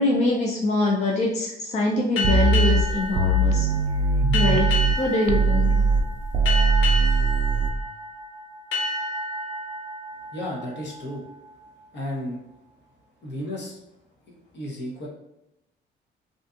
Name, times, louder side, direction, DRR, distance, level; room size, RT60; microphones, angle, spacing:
voice 1, 0.0-3.7 4.3-5.7, left 2 dB, 35° left, -1 dB, 0.4 m, -24 dB
sound 1, 2.2-11.4, left 1 dB, 85° left, 0.8 m, -30 dB
sound 2, 2.2-5.0 5.3-7.7, right 3 dB, 45° right, 0.4 m, -20 dB
voice 2, 10.3-11.2 11.9-12.4 13.2-13.8 14.5-15.1, left 1 dB, 60° left, -2 dB, 0.9 m, -33 dB
2.6 x 2.4 x 2.3 m, 0.87 s
cardioid pair, 90°, 20 cm